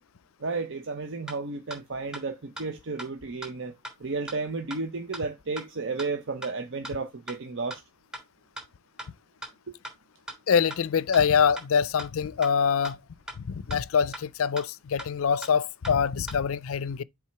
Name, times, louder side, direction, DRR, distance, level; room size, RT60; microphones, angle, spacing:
voice 1, 0.4-3.7 4.0-7.8, right 3 dB, 60° right, 0.8 m, -33 dB
sound 1, 1.3-1.4 1.7-1.8 2.1-2.2 2.6-2.7 3.0-3.1 3.4-3.5 3.8-3.9 4.3-4.4 4.7-4.8 5.1-5.2 5.6-5.7 6.0-6.1 6.4-6.5 6.8-6.9 7.3-7.4 7.7-7.8 8.1-8.2 8.6-8.7 9.0-9.1 9.4-9.5 9.8-9.9 10.3-10.4 10.7-10.8 11.1-11.2 11.6-11.7 12.0-12.1 12.4-12.5 12.8-12.9 13.3-13.4 13.7-13.8 14.1-14.2 14.6-14.7 15.0-15.1 15.4-15.5 15.8-15.9 16.3-16.4, right 1 dB, 5° right, 3.3 m, -38 dB
voice 2, 10.5-13.0 13.5-17.0, left 6 dB, 75° left, 0.4 m, -24 dB
7.5 x 3.5 x 5.9 m
head